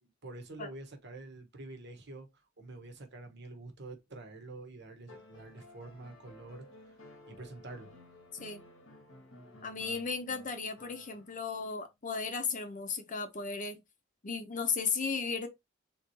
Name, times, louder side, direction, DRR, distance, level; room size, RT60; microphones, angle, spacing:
voice 1, 0.0-7.0 7.3-7.9, right 2 dB, 60° right, 1.2 m, -47 dB
sound 1, 5.1-11.5 13.0-13.1, left 1 dB, 85° left, 1.5 m, -55 dB
voice 2, 9.6-13.8 14.2-15.5, left 5 dB, 40° left, 0.8 m, -35 dB
3.8 x 3.1 x 4.1 m
head